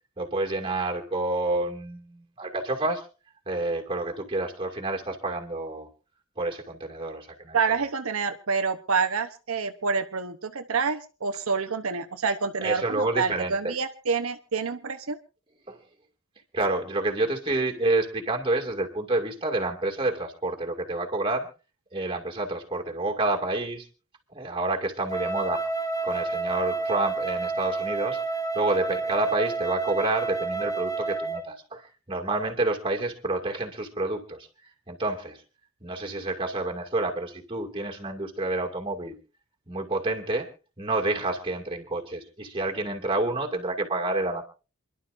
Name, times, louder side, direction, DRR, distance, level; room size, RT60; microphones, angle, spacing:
voice 1, 0.2-3.1 3.5-5.9 6.4-7.8 12.6-13.7 15.7-15.8 16.5-21.5 21.9-23.9 24.3-25.7 26.0-34.5 34.9-35.4 35.8-39.2 39.7-40.5 40.8-44.4, right 2 dB, 25° right, 3 dB, 2.2 m, -29 dB
voice 2, 7.5-15.2, right 5 dB, 80° right, 7 dB, 0.9 m, -27 dB
Wind instrument woodwind instrument, 25.1-31.5, right 3 dB, 15° left, 1.0 m, -29 dB
27.5 x 11.5 x 2.6 m, 0.34 s
head